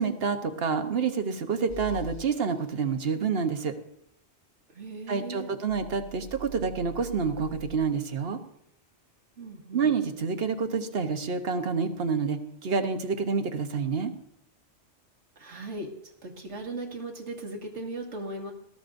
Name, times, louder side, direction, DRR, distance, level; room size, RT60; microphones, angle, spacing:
voice 1, 0.0-3.7 5.1-8.4 9.7-14.1, right 5 dB, 60° right, 7 dB, 1.2 m, -28 dB
sound 1, 1.7-2.2 5.7-7.8, right 1 dB, 15° left, 1.6 m, -43 dB
voice 2, 4.7-5.6 9.4-9.9 15.4-15.9 16.2-18.5, right 2 dB, 90° right, 1 dB, 2.1 m, -38 dB
20.0 x 14.0 x 2.6 m, 0.78 s
omnidirectional pair, 1.2 m